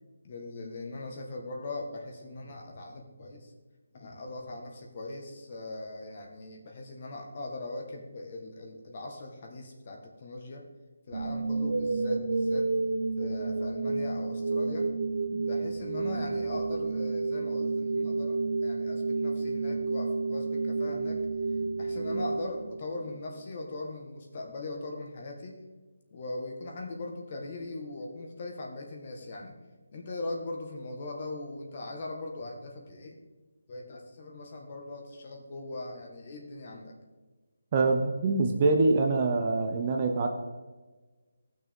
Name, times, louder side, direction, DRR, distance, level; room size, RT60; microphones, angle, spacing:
voice 1, 0.2-3.5 3.9-10.6 11.1-12.7 13.2-14.9 15.3-21.2 21.8-25.6 26.1-29.6 29.9-33.2 33.7-36.9, left 2 dB, 35° left, 1 dB, 1.8 m, -40 dB
sound 1, 11.1-23.2, right 3 dB, 55° right, 0.8 m, -30 dB
voice 2, 37.7-40.3, right 3 dB, 25° right, 3 dB, 0.8 m, -25 dB
15.5 x 6.2 x 5.4 m, 1.3 s
hypercardioid pair, 170°, 0 cm